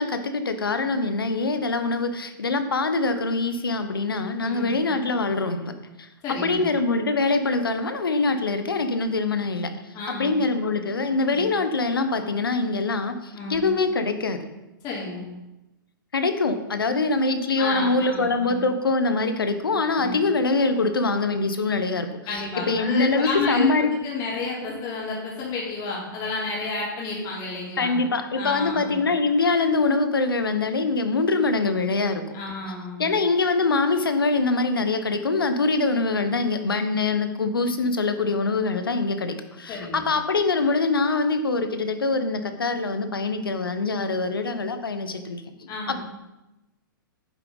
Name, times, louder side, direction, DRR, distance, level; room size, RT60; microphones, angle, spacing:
voice 1, 0.0-5.7 6.0-9.7 10.1-14.4 16.1-23.9 27.8-32.2 33.0-45.4 45.9-46.0, left 3 dB, 85° left, 8 dB, 1.0 m, -24 dB
voice 2, 4.4-4.8 6.2-6.6 9.9-10.4 11.3-11.5 13.3-13.7 14.8-15.2 17.5-18.6 20.0-20.2 22.3-27.9 28.3-29.0 32.3-33.0 39.7-40.0 45.7-46.0, left 3 dB, 35° left, -4 dB, 3.3 m, -31 dB
9.7 x 7.6 x 4.0 m, 0.99 s
hypercardioid pair, 120°, 12 cm